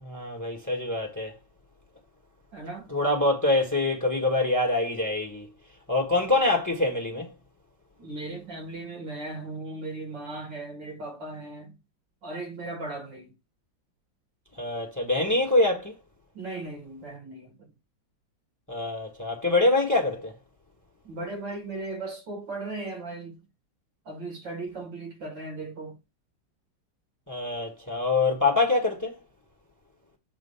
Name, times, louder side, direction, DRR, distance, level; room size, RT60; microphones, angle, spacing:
voice 1, 0.0-1.4 2.9-5.5 5.9-7.3 14.6-15.9 18.7-20.3 27.3-29.1, left 2 dB, 10° left, 1.2 m, -25 dB
voice 2, 2.5-2.9 8.0-11.8 12.2-13.3 16.3-17.7 21.0-23.4 24.0-26.0, right 2 dB, 70° right, 2.9 m, -37 dB
7.6 x 2.8 x 5.6 m
omnidirectional pair, 2.1 m